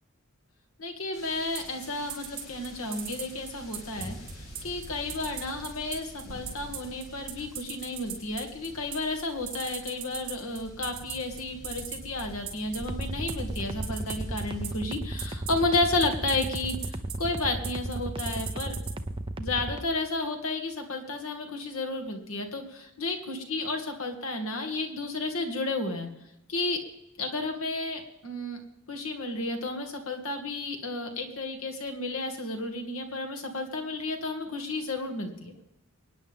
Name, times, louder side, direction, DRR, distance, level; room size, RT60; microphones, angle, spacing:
voice 1, 0.8-4.2 4.6-18.8 19.4-26.1 26.5-26.8 27.2-28.6 28.9-35.5, left 2 dB, 90° left, 4 dB, 2.4 m, -32 dB
sound 1, 1.1-14.8, equal, 75° left, 4.1 m, -45 dB
sound 2, 1.5-18.9, right 10 dB, 50° right, 5.2 m, -37 dB
sound 3, 12.8-19.8, right 1 dB, 25° right, 0.8 m, -34 dB
25.0 x 10.0 x 3.6 m, 0.87 s
head